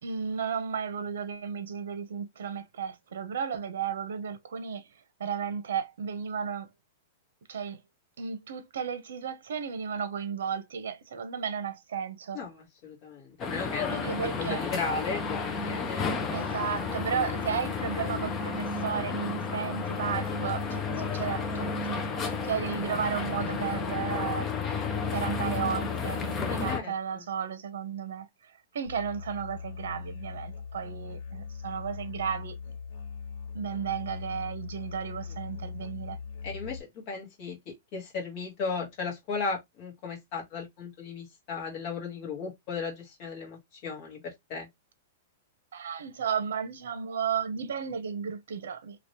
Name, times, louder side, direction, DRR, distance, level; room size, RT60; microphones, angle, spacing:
voice 1, 0.0-4.9 5.2-6.7 7.5-7.8 8.2-12.4 13.9-14.6 16.3-22.0 22.4-24.5 25.1-28.3 28.7-32.5 33.5-36.2 45.7-49.0, right 7 dB, 85° right, 0.8 m, -34 dB
voice 2, 12.3-16.1 26.4-27.2 36.4-44.7, left 4 dB, 30° left, 1.5 m, -36 dB
sound 1, 13.4-26.8, left 5 dB, 15° left, 0.5 m, -32 dB
Musical instrument, 28.9-36.8, left 5 dB, 60° left, 1.7 m, -40 dB
3.1 x 2.9 x 2.9 m
supercardioid pair, 180°, 0 cm